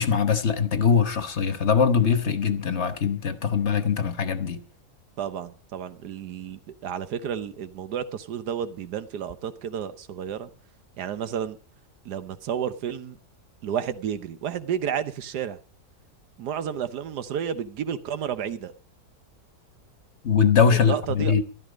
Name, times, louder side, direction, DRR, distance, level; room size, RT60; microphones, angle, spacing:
voice 1, 0.0-4.6 20.2-21.4, left 6 dB, 50° left, 1.3 m, -22 dB
voice 2, 5.2-10.5 11.0-11.6 12.0-13.2 13.6-15.6 16.4-18.7 20.7-21.3, right 8 dB, 90° right, 1.5 m, -31 dB
13.5 x 12.5 x 5.1 m
omnidirectional pair, 1.7 m